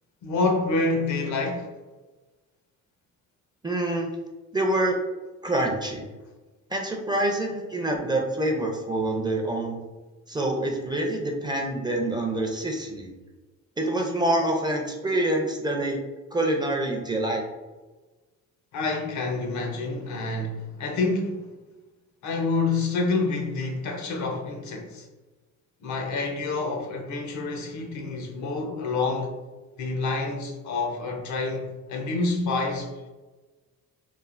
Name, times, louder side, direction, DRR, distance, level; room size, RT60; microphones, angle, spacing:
voice 1, 0.2-1.7 18.7-21.5 22.2-25.1 25.8-29.4 29.8-33.0, left 3 dB, 70° left, 0.6 m, -28 dB
voice 2, 3.6-4.1 4.5-5.0 5.4-6.1 6.7-9.8 10.3-13.1 13.8-16.0 16.3-17.4, right 1 dB, 15° right, 0.4 m, -26 dB
3.2 x 2.1 x 2.4 m
cardioid pair, 90°, 30 cm